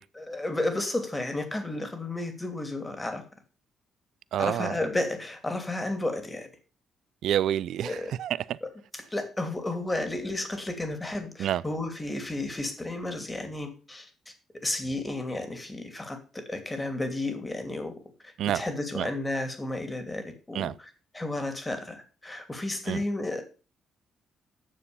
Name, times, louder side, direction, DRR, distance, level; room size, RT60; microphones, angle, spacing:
voice 1, 0.1-3.2 4.4-6.5 7.8-8.1 8.6-14.3 14.6-17.9 18.2-23.4, left 2 dB, 15° left, 2.7 m, -32 dB
voice 2, 4.3-4.8 7.2-8.6 11.4-11.6 18.4-18.6 18.9-19.1 20.5-20.7 22.9-23.0, right 11 dB, 75° right, 0.5 m, -28 dB
9.8 x 6.7 x 6.9 m
cardioid pair, 90°, 0 cm